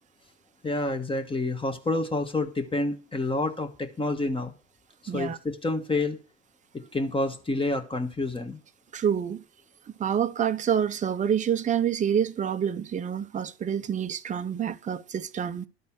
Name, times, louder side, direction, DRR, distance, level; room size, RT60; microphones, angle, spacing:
voice 1, 0.6-4.5 5.1-6.2 6.7-8.6, left 2 dB, 15° left, 1.4 m, -28 dB
voice 2, 5.1-5.4 8.9-9.4 10.0-15.7, right 8 dB, 25° right, 0.7 m, -27 dB
12.0 x 4.2 x 7.2 m
hypercardioid pair, 85°, 31 cm